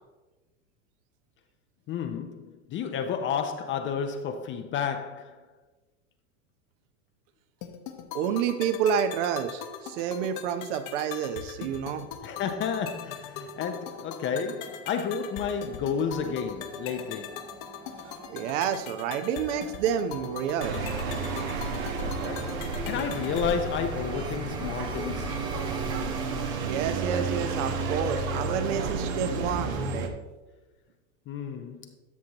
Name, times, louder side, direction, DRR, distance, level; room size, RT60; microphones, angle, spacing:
voice 1, 1.9-5.5 12.2-17.5 22.0-25.5 31.3-32.0, left 7 dB, 30° left, 0.6 m, -31 dB
sound 1, 7.6-23.6, left 8 dB, 55° left, 1.1 m, -41 dB
voice 2, 8.1-12.1 18.3-20.8 26.6-29.8, right 8 dB, 65° right, 0.8 m, -29 dB
sound 2, 13.3-28.0, right 2 dB, 10° right, 0.9 m, -47 dB
sound 3, 20.6-30.1, right 4 dB, 80° right, 1.3 m, -31 dB
13.0 x 6.0 x 2.9 m
hypercardioid pair, 115°, 40 cm